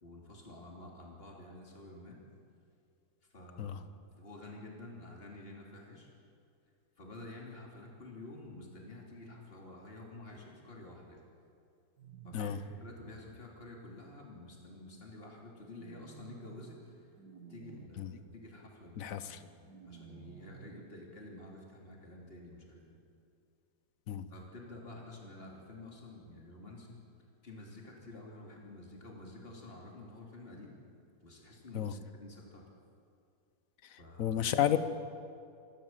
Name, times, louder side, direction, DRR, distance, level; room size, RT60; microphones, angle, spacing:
voice 1, 0.0-2.2 3.3-6.1 7.0-11.2 12.2-17.1 17.5-19.2 19.6-23.0 24.3-27.0 27.4-30.7 31.2-32.6 34.0-34.8, left 2 dB, 35° left, -1 dB, 3.3 m, -50 dB
sound 1, 12.0-13.4 15.7-16.8 17.2-17.9 19.6-20.8, right 7 dB, 85° right, 1.9 m, -53 dB
voice 2, 19.0-19.4 24.1-24.3 31.7-31.9 33.8-34.8, left 10 dB, 60° left, 12 dB, 1.3 m, -32 dB
27.0 x 13.0 x 7.5 m, 2.4 s
omnidirectional pair, 1.7 m